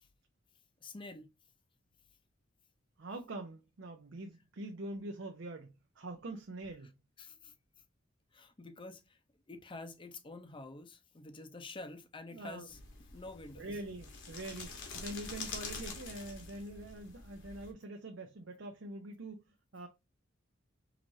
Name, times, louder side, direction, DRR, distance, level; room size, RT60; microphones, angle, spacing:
voice 1, 0.8-1.3 7.2-7.5 8.3-9.2 9.5-12.8 13.1-13.7, left 2 dB, 25° left, 0.6 m, -48 dB
voice 2, 3.0-6.9 12.3-12.7 13.6-19.4 19.7-19.9, right 2 dB, 70° right, 0.7 m, -44 dB
sound 1, 12.7-17.7, left 4 dB, 70° left, 1.1 m, -46 dB
4.9 x 3.1 x 2.6 m
head